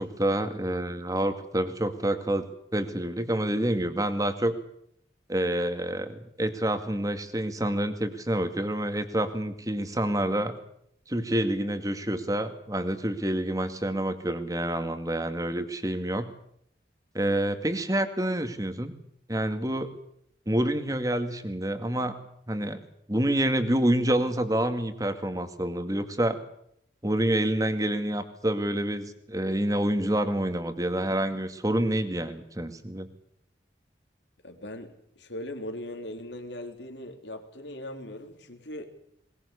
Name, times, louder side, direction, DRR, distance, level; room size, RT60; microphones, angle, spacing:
voice 1, 0.0-2.5 2.7-4.5 5.3-10.5 11.1-16.3 17.1-18.9 19.3-19.9 20.5-22.1 22.5-22.8 23.1-26.4 27.0-33.1, right 1 dB, 20° right, 9 dB, 2.1 m, -27 dB
voice 2, 34.4-38.8, left 1 dB, 80° left, 6 dB, 3.5 m, -39 dB
21.5 x 21.0 x 8.3 m, 0.71 s
head